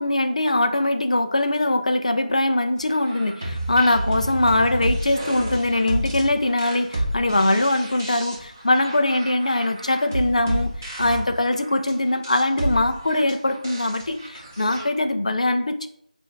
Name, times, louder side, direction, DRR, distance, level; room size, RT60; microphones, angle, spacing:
voice 1, 0.0-10.7 11.0-15.9, left 2 dB, 55° left, 7 dB, 0.4 m, -22 dB
sound 1, 2.9-14.8, right 1 dB, 20° right, 0.7 m, -30 dB
6.7 x 2.5 x 2.4 m, 0.73 s
figure-of-eight pair, 170°, 4 cm